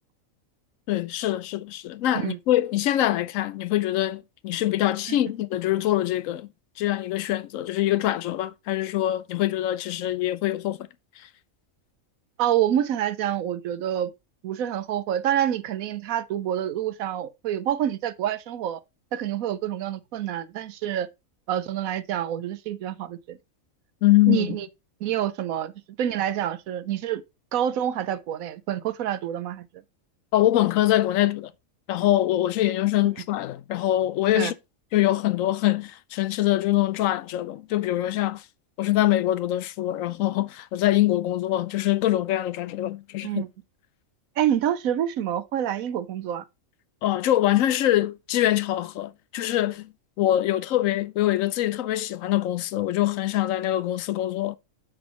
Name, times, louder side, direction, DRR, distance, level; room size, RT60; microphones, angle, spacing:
voice 1, 0.9-6.5 6.8-10.8 24.0-24.6 30.3-31.5 31.9-34.5 34.9-38.4 38.8-43.4 47.0-49.9 50.2-54.6, left 14 dB, 75° left, 1.0 m, -24 dB
voice 2, 12.4-14.1 14.4-18.8 19.1-21.1 21.5-23.4 24.3-24.7 25.0-25.7 26.0-27.2 27.5-29.7 34.4-34.5 43.2-43.5 44.4-46.4, right 10 dB, 90° right, 1.1 m, -27 dB
9.3 x 6.2 x 2.9 m
omnidirectional pair, 1.4 m